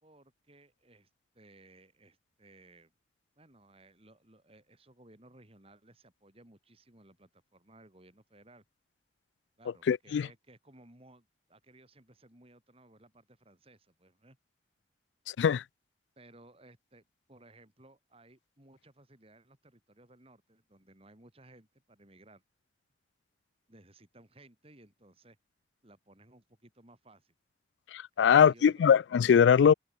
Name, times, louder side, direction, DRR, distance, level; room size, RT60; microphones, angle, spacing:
voice 1, 0.0-2.9 3.4-8.6 9.6-14.4 16.2-22.4 23.7-25.4 25.8-27.3 28.2-28.8, right 2 dB, 35° right, 3.8 m, -59 dB
voice 2, 9.9-10.3 15.4-15.6 27.9-29.7, left 7 dB, 90° left, 0.3 m, -22 dB
head